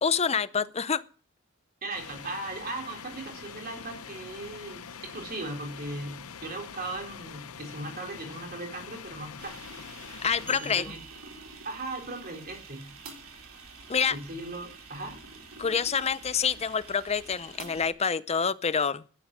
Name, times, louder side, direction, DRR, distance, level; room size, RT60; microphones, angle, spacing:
voice 1, 0.0-1.0 10.2-10.8 13.9-14.2 15.6-19.0, left 6 dB, 30° left, 0.6 m, -27 dB
voice 2, 1.8-9.6 10.5-11.0 11.6-12.9 14.1-15.2, right 2 dB, 45° right, 4.1 m, -38 dB
sound 1, 1.9-10.6, left 7 dB, 85° left, 0.8 m, -44 dB
sound 2, 9.4-17.9, right 4 dB, 70° right, 3.2 m, -47 dB
sound 3, 10.5-12.3, right 2 dB, 10° right, 1.4 m, -48 dB
13.5 x 11.0 x 6.2 m
head